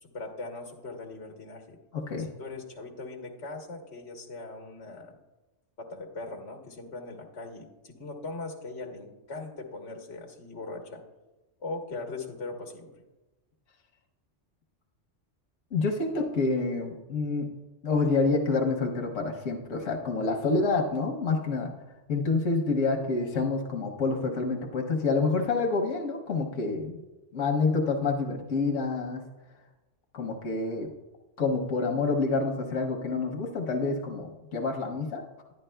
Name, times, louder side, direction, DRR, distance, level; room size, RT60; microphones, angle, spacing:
voice 1, 0.0-1.8 2.2-5.2 5.8-11.0 11.6-12.9, left 3 dB, 65° left, 1 dB, 1.5 m, -40 dB
voice 2, 1.9-2.3 15.7-17.5 17.8-21.7 22.1-26.9 27.3-29.3 30.1-30.9 31.4-35.2, left 3 dB, 90° left, 1 dB, 1.2 m, -28 dB
10.5 x 10.5 x 2.2 m, 1.1 s
omnidirectional pair, 1.3 m